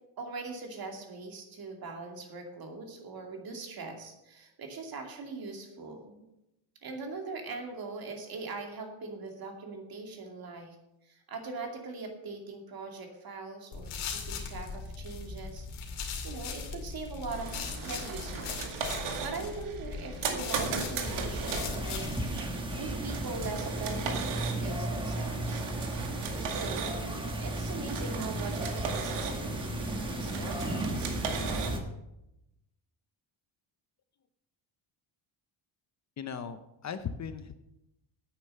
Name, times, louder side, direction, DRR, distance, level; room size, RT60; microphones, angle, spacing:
voice 1, 0.2-6.2 6.8-10.8 11.1-15.7 15.9-18.5 18.9-22.1 22.8-25.6 26.4-26.9 27.4-31.2, right 3 dB, 45° right, 3 dB, 2.5 m, -41 dB
sound 1, 13.7-22.3, left 5 dB, 85° left, 2.6 m, -39 dB
sound 2, 17.3-31.8, right 5 dB, 80° right, 2.2 m, -37 dB
sound 3, 21.0-31.8, right 1 dB, 10° right, 1.1 m, -35 dB
voice 2, 36.2-37.5, left 7 dB, 35° left, 11 dB, 0.6 m, -38 dB
9.9 x 8.9 x 6.7 m, 0.90 s
cardioid pair, 165°, 50 cm